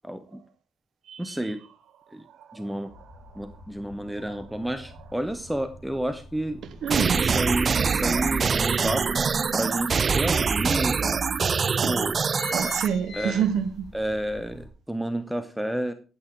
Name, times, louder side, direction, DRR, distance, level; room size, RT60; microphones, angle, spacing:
voice 1, 0.0-0.4 1.2-1.6 2.1-2.3 2.5-2.9 3.3-6.6 7.1-9.2 9.5-12.1 13.1-13.4 13.9-15.9, right 1 dB, 5° right, 1.0 m, -31 dB
voice 2, 2.3-2.7 6.8-7.2 11.8-11.9 12.5-13.9, right 8 dB, 70° right, 1.2 m, -27 dB
sound 1, 2.9-14.7, equal, 45° left, 3.3 m, -48 dB
sound 2, 6.9-12.9, right 5 dB, 40° right, 0.5 m, -24 dB
sound 3, 9.0-9.8 10.5-10.6 10.8-10.9 11.6-11.8 12.1-13.9 14.3-14.4, left 2 dB, 70° left, 3.5 m, -38 dB
13.5 x 9.3 x 3.9 m
cardioid pair, 90°, 0 cm